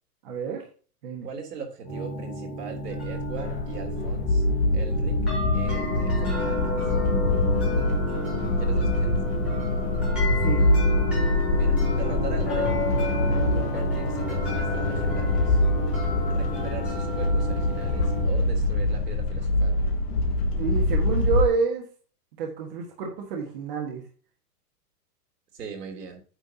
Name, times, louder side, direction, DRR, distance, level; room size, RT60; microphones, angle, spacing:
voice 1, 0.2-0.6 1.0-1.3 10.4-10.6 20.6-21.8 22.4-24.0, right 6 dB, 35° right, 1 dB, 1.6 m, -28 dB
voice 2, 1.2-4.4 4.7-5.2 5.5-6.9 8.6-9.2 11.5-12.7 13.5-15.6 16.2-19.8 25.5-26.2, right 6 dB, 75° right, 2 dB, 3.1 m, -40 dB
sound 1, 1.8-18.3, left 1 dB, ahead, 4.2 m, -31 dB
sound 2, 2.9-21.4, left 2 dB, 35° left, 1.3 m, -24 dB
9.1 x 7.4 x 2.8 m, 0.39 s
supercardioid pair, 175°, 48 cm